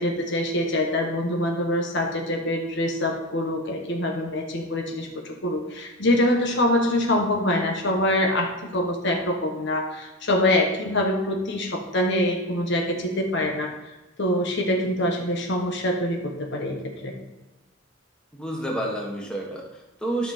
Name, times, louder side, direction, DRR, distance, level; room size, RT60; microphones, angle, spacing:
voice 1, 0.0-13.7 14.2-17.1, left 1 dB, 60° left, 2 dB, 1.3 m, -25 dB
voice 2, 18.3-20.3, right 1 dB, 5° left, -2 dB, 1.6 m, -30 dB
12.0 x 5.7 x 4.2 m, 1.0 s
head